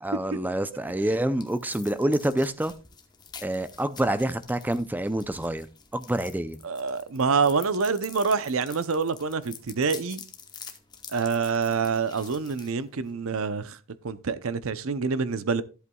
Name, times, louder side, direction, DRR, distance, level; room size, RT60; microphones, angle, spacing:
voice 1, 0.0-2.7 3.4-5.7 5.9-6.6, right 1 dB, 10° right, 0.4 m, -27 dB
sound 1, 0.7-13.4, left 6 dB, 20° left, 1.0 m, -47 dB
voice 2, 6.6-10.2 11.1-13.8 14.0-15.6, right 5 dB, 65° right, 0.6 m, -26 dB
13.5 x 8.1 x 2.3 m
head